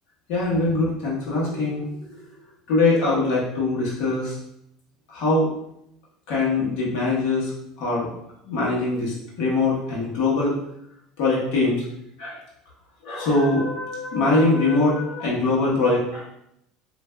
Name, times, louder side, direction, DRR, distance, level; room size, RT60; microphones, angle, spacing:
voice 1, 0.3-1.9 2.2-2.3 2.7-4.4 5.1-5.5 6.3-7.5 7.8-8.1 8.5-10.5 11.2-11.8 12.2-12.4 13.0-16.3, left 2 dB, 70° left, -5 dB, 1.0 m, -22 dB
3.2 x 2.5 x 2.2 m, 0.78 s
supercardioid pair, 120°, 0 cm